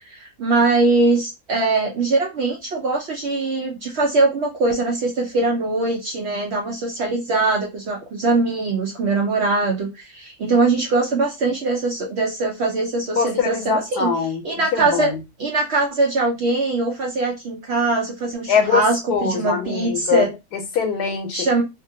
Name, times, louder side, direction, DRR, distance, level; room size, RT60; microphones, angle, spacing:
voice 1, 0.0-14.1 14.4-15.1 15.4-20.3 21.3-21.6, right 3 dB, 75° right, 0.6 m, -22 dB
voice 2, 13.2-14.4 14.7-15.2 18.5-18.8 19.1-21.5, left 6 dB, 75° left, 1.2 m, -22 dB
2.8 x 2.4 x 2.6 m
omnidirectional pair, 1.7 m